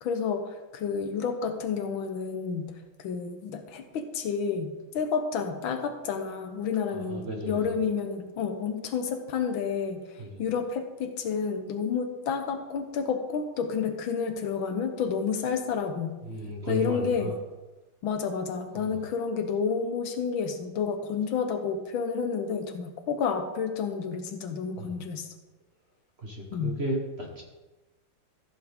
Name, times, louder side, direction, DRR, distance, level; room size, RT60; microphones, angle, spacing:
voice 1, 0.0-2.7 3.0-16.2 16.7-17.3 18.0-25.3 26.5-26.8, left 6 dB, 75° left, 6 dB, 1.6 m, -30 dB
voice 2, 6.9-7.7 10.2-10.4 16.2-17.3 18.7-19.0 24.8-24.9 26.2-27.4, right 1 dB, 35° right, -1 dB, 1.3 m, -34 dB
14.0 x 7.0 x 3.5 m, 1.1 s
omnidirectional pair, 2.3 m